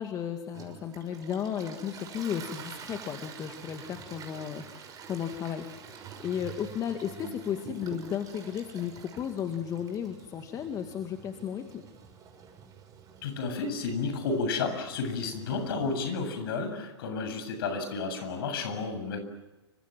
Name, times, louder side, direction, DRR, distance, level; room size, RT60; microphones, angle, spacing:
voice 1, 0.0-11.8, left 8 dB, 25° left, 6 dB, 2.1 m, -34 dB
Toilet flush, 0.5-16.1, right 6 dB, 25° right, 6.2 m, -47 dB
voice 2, 13.2-19.2, left 4 dB, 55° left, 9 dB, 7.5 m, -32 dB
30.0 x 25.5 x 7.6 m, 1.0 s
hypercardioid pair, 115°, 15 cm